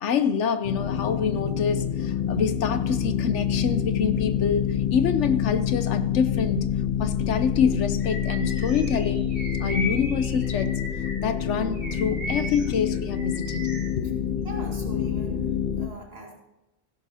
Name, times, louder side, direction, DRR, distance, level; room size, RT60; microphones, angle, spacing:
voice 1, 0.0-6.7 7.0-10.8 11.2-13.7 14.0-14.1, left 6 dB, 75° left, 1.0 m, -26 dB
sound 1, 0.6-15.9, left 9 dB, 45° left, 0.7 m, -27 dB
Bird vocalization bird call bird song, 8.0-11.3 11.7-13.9, left 1 dB, 10° right, 3.4 m, -37 dB
voice 2, 14.4-16.4, right 2 dB, 55° right, 2.4 m, -41 dB
16.0 x 11.0 x 2.8 m
omnidirectional pair, 1.3 m